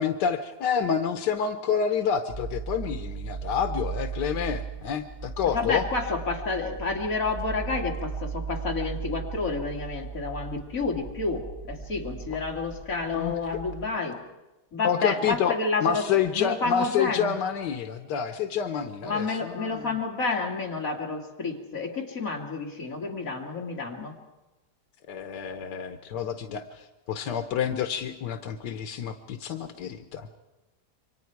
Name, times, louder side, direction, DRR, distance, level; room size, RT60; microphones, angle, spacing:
voice 1, 0.0-5.8 13.1-13.4 14.8-19.9 25.1-30.3, left 7 dB, 90° left, 8 dB, 1.5 m, -28 dB
sound 1, 2.3-13.9, right 6 dB, 45° right, 3.4 m, -37 dB
voice 2, 5.5-14.2 14.7-16.0 16.3-17.3 19.0-24.2, left 4 dB, 55° left, 0 dB, 2.9 m, -30 dB
28.0 x 24.0 x 4.7 m, 1.0 s
omnidirectional pair, 1.8 m